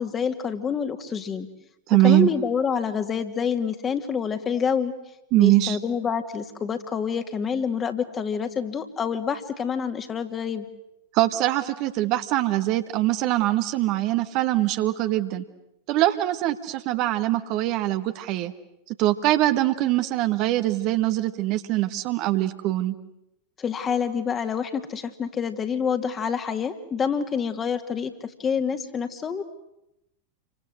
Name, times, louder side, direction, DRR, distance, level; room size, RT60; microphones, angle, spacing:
voice 1, 0.0-1.5 2.0-4.9 5.4-10.7 23.6-29.4, left 6 dB, 20° left, 8 dB, 2.2 m, -27 dB
voice 2, 1.9-2.3 5.3-5.8 11.1-15.4 15.9-18.5 19.0-22.9, right 15 dB, 40° right, 9 dB, 1.5 m, -22 dB
29.0 x 25.0 x 8.0 m, 0.85 s
figure-of-eight pair, 90°, 0 cm